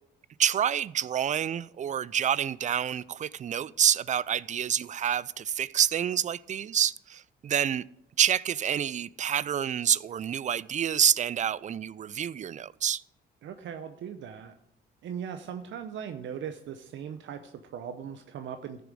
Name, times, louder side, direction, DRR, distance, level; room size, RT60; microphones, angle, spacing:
voice 1, 0.4-7.8 8.2-13.0, right 9 dB, 40° right, 0.4 m, -27 dB
voice 2, 13.4-14.5 15.0-18.8, right 8 dB, 70° right, 0.7 m, -39 dB
13.0 x 6.9 x 4.9 m
cardioid pair, 90°, 20 cm